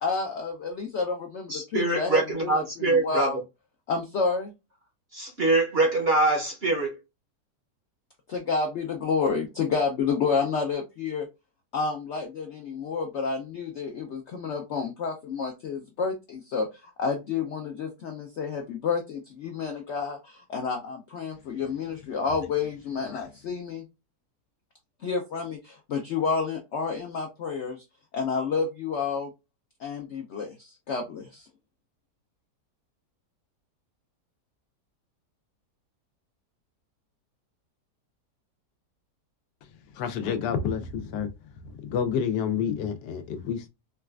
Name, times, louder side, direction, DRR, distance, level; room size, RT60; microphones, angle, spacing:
voice 1, 0.0-2.5 2.8-3.4 3.9-4.5 8.3-11.3 11.7-23.8 25.0-27.8 28.1-29.3 29.8-31.5, left 5 dB, 70° left, 0.6 m, -30 dB
voice 2, 1.5-3.4 5.1-7.0, right 2 dB, 55° right, 0.7 m, -24 dB
voice 3, 39.9-41.3 41.6-43.7, left 7 dB, 90° left, 1.2 m, -29 dB
4.0 x 2.3 x 2.3 m
omnidirectional pair, 1.8 m